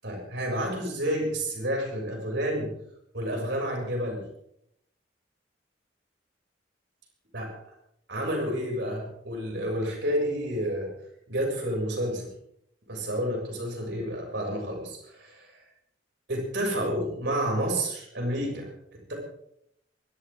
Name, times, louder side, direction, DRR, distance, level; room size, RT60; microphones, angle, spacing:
voice 1, 0.0-2.7 3.1-4.2 7.3-7.5 8.1-10.9 11.3-12.3 12.9-15.6 16.3-19.1, equal, 70° right, -1 dB, 7.1 m, -30 dB
24.0 x 14.0 x 3.8 m, 0.73 s
head